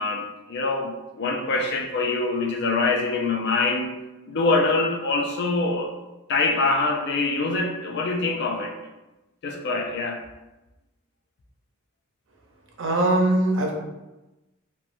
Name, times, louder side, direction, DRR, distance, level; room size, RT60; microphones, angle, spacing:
voice 1, 0.0-3.9 4.3-6.0 6.3-8.7 9.4-10.2, left 3 dB, 55° left, 2 dB, 0.4 m, -24 dB
voice 2, 12.8-13.7, right 1 dB, 60° right, 1 dB, 0.5 m, -21 dB
3.0 x 2.1 x 2.5 m, 1.0 s
head